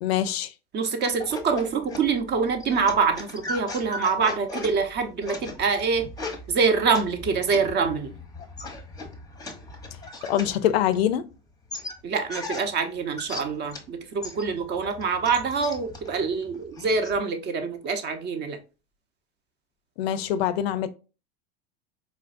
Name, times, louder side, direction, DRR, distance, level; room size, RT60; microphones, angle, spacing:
voice 1, 0.0-0.5 10.2-11.2 20.0-20.9, left 11 dB, 75° left, 0.5 m, -24 dB
voice 2, 0.7-6.1 6.5-8.1 12.0-18.6, right 5 dB, 35° right, 0.7 m, -25 dB
sound 1, 1.1-11.3 11.7-13.9 14.2-17.2, left 2 dB, 10° left, 0.7 m, -39 dB
4.1 x 2.5 x 2.4 m
hypercardioid pair, 105°, 31 cm